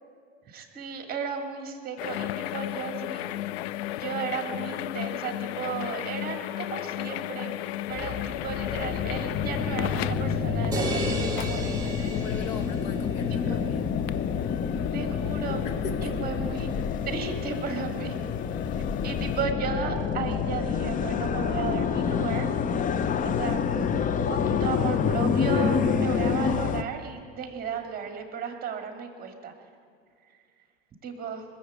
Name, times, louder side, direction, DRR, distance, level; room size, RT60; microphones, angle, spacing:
voice 1, 0.5-3.2 3.9-7.5 7.9-12.4 13.3-13.6 14.9-15.6 16.0-16.7 17.1-18.2 19.0-22.5 23.2-29.5 31.0-31.4, right 6 dB, 30° right, 5 dB, 2.4 m, -35 dB
sound 1, 2.0-19.4, left 14 dB, 80° left, 0.5 m, -36 dB
sound 2, 7.9-26.8, left 6 dB, 25° left, 0.6 m, -28 dB
sound 3, 10.7-13.1, right 3 dB, 10° right, 2.8 m, -34 dB
voice 2, 12.1-13.9 15.6-16.1, left 5 dB, 50° left, 8 dB, 1.6 m, -39 dB
20.5 x 7.3 x 8.4 m, 2.3 s
supercardioid pair, 110°, 31 cm